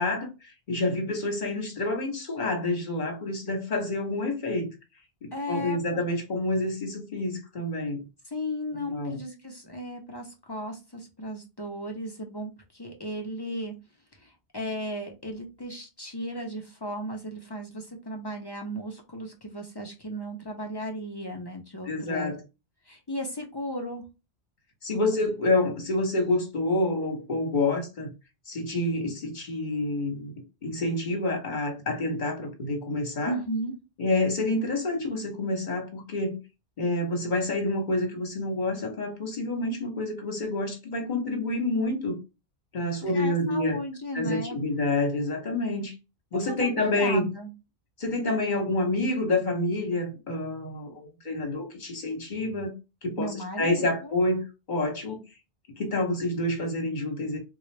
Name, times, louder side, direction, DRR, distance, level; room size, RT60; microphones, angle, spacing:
voice 1, 0.0-4.7 5.2-8.0 8.8-9.2 21.9-22.4 24.8-28.1 28.5-30.3 30.6-33.3 34.0-36.4 36.8-42.2 42.7-43.8 44.1-45.9 46.3-47.3 48.0-52.7 53.0-55.2 55.8-57.4, left 2 dB, 45° left, 1.3 m, -28 dB
voice 2, 5.3-6.0 8.3-13.7 14.1-22.3 22.9-24.0 33.2-33.7 43.0-44.6 46.3-47.5 53.2-54.1, equal, 25° left, 0.7 m, -35 dB
3.9 x 2.3 x 3.2 m
omnidirectional pair, 1.1 m